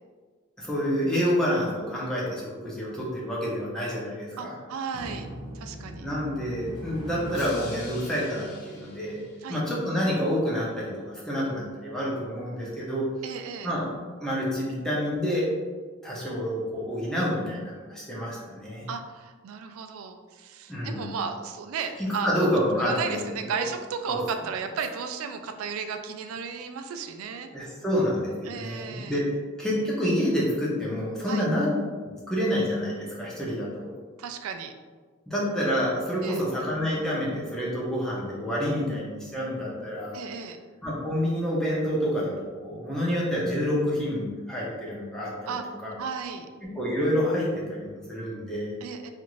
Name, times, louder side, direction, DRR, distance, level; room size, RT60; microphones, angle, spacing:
voice 1, 0.6-4.5 6.0-9.2 9.5-13.0 13.6-13.9 14.2-15.5 16.0-18.9 20.7-21.1 22.0-23.2 23.5-23.6 24.1-24.2 27.5-29.2 29.6-31.7 32.3-33.9 35.3-40.1 40.8-42.3 42.6-45.5 45.8-46.0 46.8-48.7, equal, 5° left, -6 dB, 0.7 m, -28 dB
voice 2, 4.4-5.3 5.5-6.1 9.4-9.6 13.2-13.7 18.9-22.4 22.8-27.5 28.4-29.2 31.3-31.5 34.2-34.7 36.2-36.4 40.1-40.6 45.5-45.6 46.0-46.5 48.8-49.1, right 6 dB, 75° right, 7 dB, 0.3 m, -34 dB
Drum, 4.9-9.8, equal, 85° left, 0.9 m, -40 dB
2.5 x 2.5 x 3.0 m, 1.5 s
head